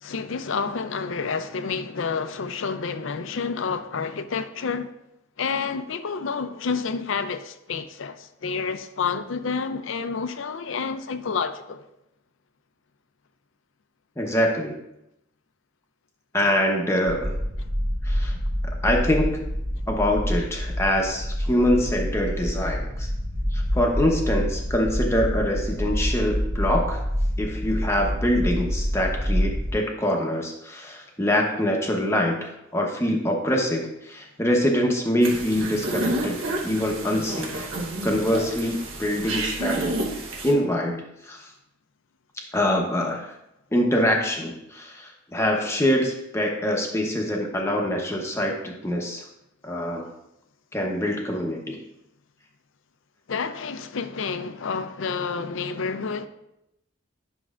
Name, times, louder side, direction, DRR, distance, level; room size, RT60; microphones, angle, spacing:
voice 1, 0.0-4.9 5.4-11.8 53.3-56.3, left 5 dB, 70° left, 0.5 m, -29 dB
voice 2, 14.2-14.8 16.3-17.4 18.0-18.3 18.8-19.5 19.9-23.1 23.5-27.1 27.4-36.4 36.6-37.7 38.0-39.9 40.4-41.5 42.4-43.3 43.7-49.2 49.6-50.1 50.7-51.8, left 1 dB, 15° left, 0.8 m, -24 dB
sound 1, 17.1-29.7, equal, 60° right, 1.6 m, -27 dB
sound 2, 35.2-40.5, right 1 dB, 80° right, 1.4 m, -30 dB
10.0 x 6.1 x 2.4 m
head